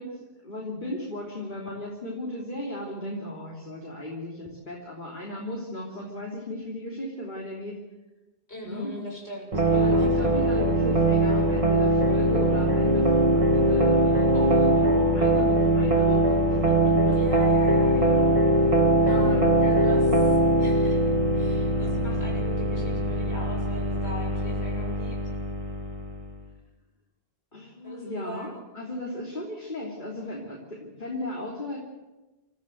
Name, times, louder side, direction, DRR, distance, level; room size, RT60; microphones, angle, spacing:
voice 1, 0.0-7.8 8.6-8.9 9.7-17.2 19.0-19.3 27.5-31.8, left 1 dB, 50° left, -2 dB, 3.5 m, -35 dB
voice 2, 8.5-10.3 14.3-14.7 17.0-18.7 19.1-21.0 21.3-25.2 27.8-28.6, equal, 85° left, -1 dB, 7.2 m, -40 dB
sound 1, 9.5-26.3, right 1 dB, 35° right, 1.9 m, -22 dB
28.5 x 14.0 x 7.9 m, 1.1 s
omnidirectional pair, 1.1 m